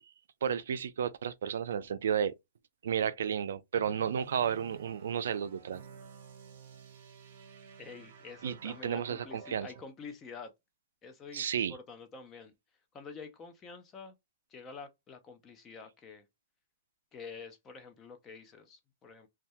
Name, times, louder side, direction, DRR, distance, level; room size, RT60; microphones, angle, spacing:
voice 1, 0.4-2.3 2.8-5.8 8.4-9.7 11.3-11.8, right 8 dB, 75° right, 0.3 m, -32 dB
sound 1, 3.7-9.9, right 5 dB, 50° right, 0.8 m, -53 dB
voice 2, 7.8-10.5 11.0-12.5 12.9-14.1 14.5-16.3 17.1-19.3, left 5 dB, 15° left, 0.4 m, -48 dB
2.2 x 2.1 x 2.7 m
hypercardioid pair, 170°, 0 cm